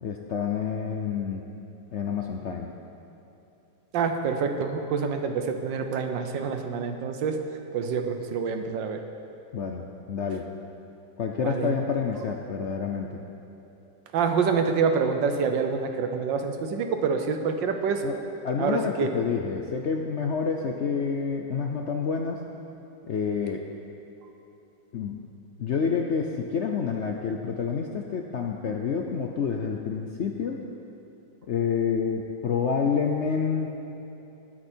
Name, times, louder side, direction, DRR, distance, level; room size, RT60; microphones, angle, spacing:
voice 1, 0.0-1.4 1.9-2.7 9.5-10.5 11.2-13.2 18.0-18.2 18.4-22.4 23.1-23.6 24.9-25.2 25.6-30.6 31.5-33.8, left 6 dB, 65° left, 2 dB, 0.7 m, -28 dB
voice 2, 3.9-7.4 7.7-9.0 11.4-11.7 14.1-18.0 18.6-19.1, right 5 dB, 90° right, 6 dB, 1.6 m, -26 dB
19.5 x 8.7 x 4.5 m, 2.9 s
omnidirectional pair, 1.9 m